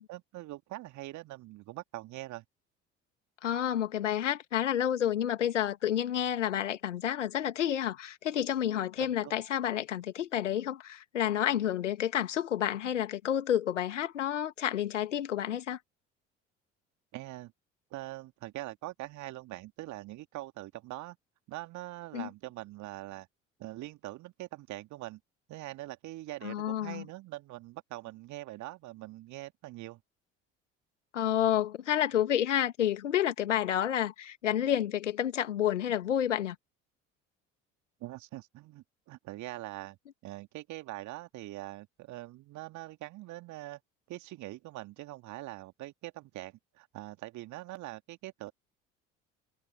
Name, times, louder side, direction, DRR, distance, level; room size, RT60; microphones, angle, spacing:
voice 1, 0.1-2.4 9.0-9.3 17.1-17.5 17.9-21.2 21.5-23.3 23.6-25.2 25.5-30.0 38.0-40.0 40.2-43.8 44.1-48.5, right 17 dB, 50° right, 2.5 m, -43 dB
voice 2, 3.4-15.8 22.1-22.3 26.4-27.0 31.1-36.6, left 10 dB, 75° left, 2.4 m, -30 dB
figure-of-eight pair, 60°, 37 cm